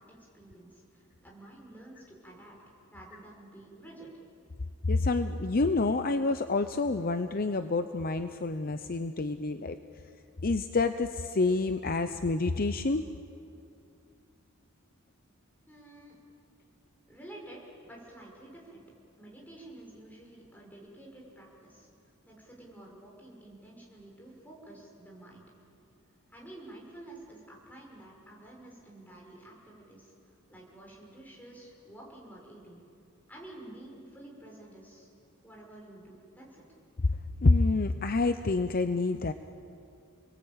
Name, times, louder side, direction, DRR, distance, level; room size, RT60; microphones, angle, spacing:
voice 1, 0.0-4.1 15.7-16.2 17.1-18.8 19.2-21.9 22.3-25.4 26.3-32.8 33.3-35.1 35.4-36.6, right 1 dB, 10° left, -2 dB, 6.1 m, -50 dB
voice 2, 4.8-9.8 10.4-13.0 37.4-39.3, left 3 dB, 45° left, 9 dB, 0.7 m, -27 dB
30.0 x 21.0 x 9.0 m, 2.5 s
head